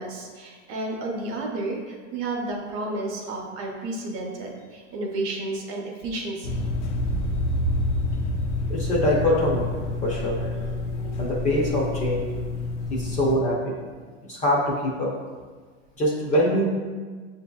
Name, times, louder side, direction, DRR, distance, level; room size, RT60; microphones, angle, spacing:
voice 1, 0.0-6.7, right 2 dB, 35° right, 0 dB, 0.7 m, -32 dB
sound 1, 6.4-13.4, left 1 dB, 70° left, 0.6 m, -28 dB
voice 2, 8.7-12.4 12.9-13.8 14.3-15.2 16.0-16.6, equal, 20° left, -3 dB, 0.5 m, -24 dB
6.6 x 2.7 x 2.3 m, 1.5 s
supercardioid pair, 140°, 37 cm